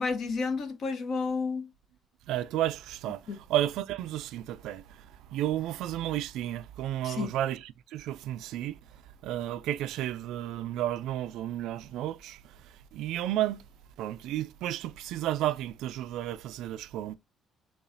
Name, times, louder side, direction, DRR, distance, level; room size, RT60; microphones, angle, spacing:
voice 1, 0.0-1.7 3.3-3.4 7.0-7.3, left 4 dB, 60° left, 0.9 m, -31 dB
voice 2, 2.3-3.2 3.5-4.8 5.3-8.8 9.2-12.4 12.9-13.6 14.0-17.2, right 13 dB, 80° right, 0.3 m, -32 dB
6.8 x 2.4 x 2.6 m
cardioid pair, 85°, 0 cm